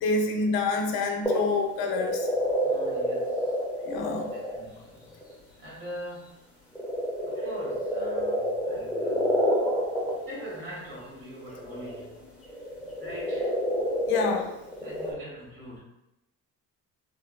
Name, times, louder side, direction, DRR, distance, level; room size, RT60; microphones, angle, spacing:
voice 1, 0.0-2.3 3.9-4.3 14.1-14.5, left 3 dB, 85° left, 3 dB, 0.6 m, -27 dB
sound 1, 1.2-4.6 5.0-5.3 6.7-10.5 11.4-15.1, equal, 5° right, 0.3 m, -28 dB
voice 2, 2.6-3.6 4.0-5.0 5.6-6.4 7.2-9.4 10.2-13.6 14.8-15.8, equal, 75° right, -6 dB, 1.5 m, -43 dB
3.4 x 2.1 x 2.3 m, 0.90 s
cardioid pair, 165°, 37 cm